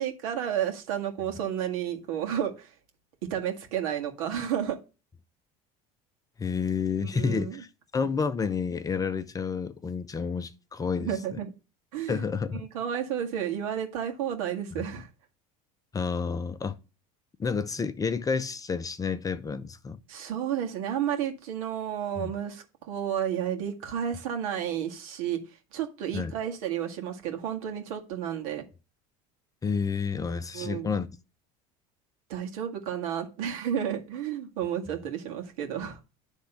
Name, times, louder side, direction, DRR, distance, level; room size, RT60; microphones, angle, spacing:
voice 1, 0.0-2.7 3.3-4.8 7.1-7.6 11.0-11.5 11.9-12.2 12.5-15.1 20.1-25.4 25.7-28.6 30.3-30.9 32.3-36.0, right 9 dB, 80° right, 1.9 m, -31 dB
voice 2, 6.4-7.7 7.9-11.4 12.1-12.7 14.8-14.9 15.9-16.8 17.4-20.0 22.2-22.3 26.1-26.3 29.6-31.1, left 5 dB, 20° left, 0.7 m, -30 dB
10.0 x 3.6 x 5.6 m
supercardioid pair, 110°, 17 cm